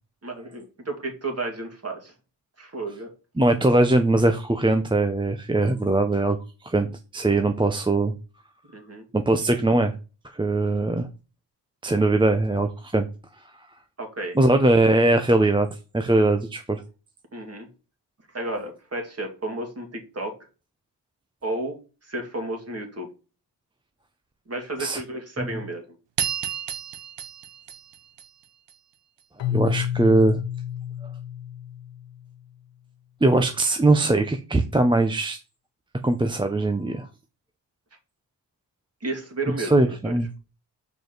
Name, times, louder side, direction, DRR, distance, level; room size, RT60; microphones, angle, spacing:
voice 1, 0.2-2.1 2.6-3.1 8.7-9.0 14.0-14.4 17.3-17.7 18.3-20.3 21.4-21.8 22.0-23.1 24.5-25.9 39.0-40.2, right 2 dB, 35° right, 2 dB, 2.5 m, -32 dB
voice 2, 3.4-6.9 7.1-8.1 9.1-10.0 10.3-11.1 11.8-13.1 14.3-15.7 15.9-16.8 24.8-25.0 25.4-25.5 29.5-30.4 33.2-35.4 36.0-37.1 39.6-40.3, right 2 dB, 10° right, 6 dB, 0.6 m, -21 dB
sound 1, 26.2-28.7, right 9 dB, 75° right, 0.9 m, -31 dB
Keyboard (musical), 29.4-32.3, left 10 dB, 90° left, 0.9 m, -30 dB
7.0 x 4.8 x 3.9 m, 0.32 s
wide cardioid pair, 105°, 43 cm